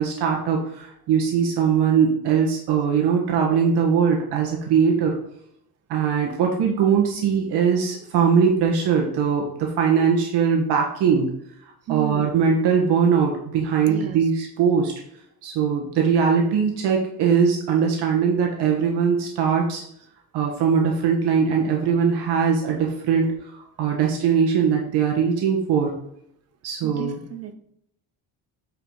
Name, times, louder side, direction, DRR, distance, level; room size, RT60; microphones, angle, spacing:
voice 1, 0.0-5.2 5.9-11.3 11.9-14.9 15.4-19.8 20.3-25.9 26.6-27.2, right 6 dB, 80° right, 0 dB, 1.5 m, -21 dB
voice 2, 11.9-12.5 13.9-14.3 26.8-27.5, right 9 dB, 40° right, 9 dB, 0.8 m, -33 dB
9.0 x 4.8 x 3.9 m, 0.73 s
cardioid pair, 150°, 39 cm